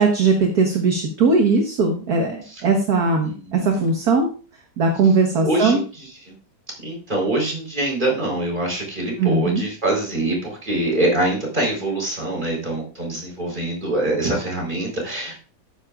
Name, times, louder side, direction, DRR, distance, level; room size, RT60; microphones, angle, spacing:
voice 1, 0.0-4.3 4.8-5.8 9.2-9.6, right 4 dB, 55° right, 2 dB, 1.8 m, -19 dB
voice 2, 3.0-3.8 5.4-6.4 6.8-15.3, right 1 dB, 25° right, -1 dB, 4.3 m, -24 dB
14.0 x 9.9 x 2.5 m, 0.37 s
omnidirectional pair, 2.1 m